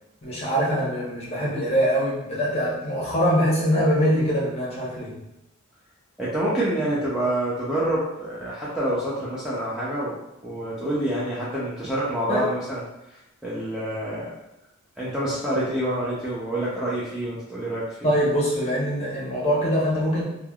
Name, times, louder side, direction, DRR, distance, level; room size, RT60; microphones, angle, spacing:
voice 1, 0.2-5.1 12.3-12.5 18.0-20.2, equal, 30° left, -6 dB, 0.8 m, -23 dB
voice 2, 6.2-10.2 10.4-12.8 13.4-14.3 15.0-18.1, right 1 dB, 5° right, -9 dB, 0.4 m, -27 dB
3.2 x 2.2 x 2.3 m, 0.88 s
head